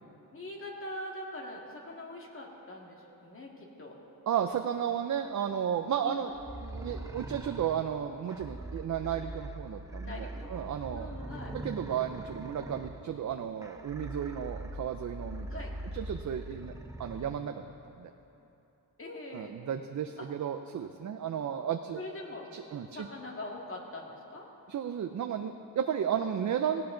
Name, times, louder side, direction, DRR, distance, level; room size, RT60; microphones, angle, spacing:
voice 1, 0.3-4.0 6.0-6.3 10.0-10.5 10.9-11.5 15.5-15.7 19.0-19.6 20.2-20.3 22.0-22.5 22.9-24.5, left 1 dB, 35° left, -1 dB, 2.2 m, -42 dB
voice 2, 4.3-15.6 15.9-16.7 17.0-17.6 18.0-18.1 19.3-22.0 22.5-23.1 24.7-26.9, right 8 dB, 50° right, 6 dB, 0.6 m, -34 dB
sound 1, 6.3-17.4, right 1 dB, 10° right, 0.6 m, -42 dB
17.5 x 17.0 x 3.9 m, 3.0 s
wide cardioid pair, 140°, 37 cm